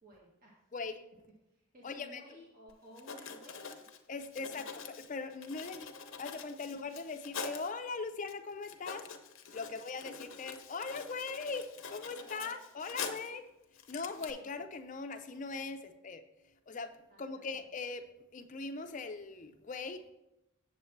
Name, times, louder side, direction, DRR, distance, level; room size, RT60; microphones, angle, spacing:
voice 1, 0.0-0.7 1.5-3.7 4.5-4.7 9.6-9.8 12.0-13.1 17.1-17.4, equal, 45° right, -3 dB, 1.2 m, -56 dB
voice 2, 0.7-1.0 1.8-2.2 4.1-4.7 5.0-5.9 6.2-9.1 9.5-13.4 13.9-16.2 16.7-16.9 17.2-20.0, left 4 dB, 40° left, 8 dB, 0.5 m, -40 dB
Writing, 2.7-2.8 3.0-7.7 8.3-8.4 8.6-13.4 13.8-14.3, left 5 dB, 85° left, 0.7 m, -45 dB
7.8 x 7.3 x 3.2 m, 0.89 s
head